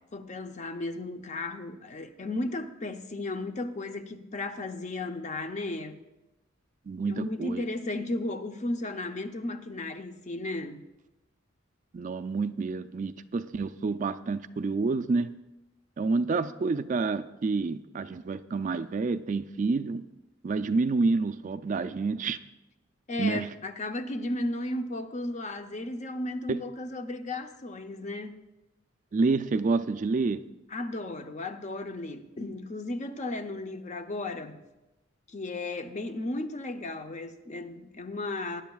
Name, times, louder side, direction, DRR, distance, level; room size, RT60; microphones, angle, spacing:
voice 1, 0.1-6.0 7.0-10.8 23.1-28.4 30.7-34.6 35.3-38.6, left 2 dB, 35° left, 0.6 m, -34 dB
voice 2, 6.9-7.7 11.9-15.3 16.0-20.0 20.4-22.4 23.2-23.5 26.5-26.6 29.1-30.4, right 3 dB, 40° right, 0.3 m, -28 dB
20.0 x 10.5 x 2.3 m
head